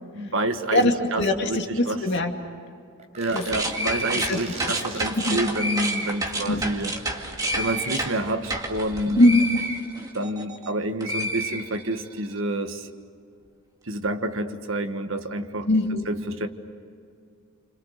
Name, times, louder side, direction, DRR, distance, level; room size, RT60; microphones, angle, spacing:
voice 1, 0.1-2.0 3.1-6.9 7.6-9.2 10.1-12.9 13.8-15.7 16.1-16.5, right 1 dB, 60° right, 7 dB, 1.6 m, -28 dB
voice 2, 0.7-2.3 3.3-3.5 4.1-4.4 5.2-5.4 6.5-6.6 9.2-9.6 15.6-16.1, left 1 dB, 55° left, 3 dB, 2.4 m, -21 dB
sound 1, 3.0-5.4, right 2 dB, 30° right, 4.2 m, -41 dB
sound 2, 3.3-10.7 11.0-12.2, right 1 dB, 15° right, 2.1 m, -29 dB
30.0 x 26.5 x 6.7 m, 2.3 s
head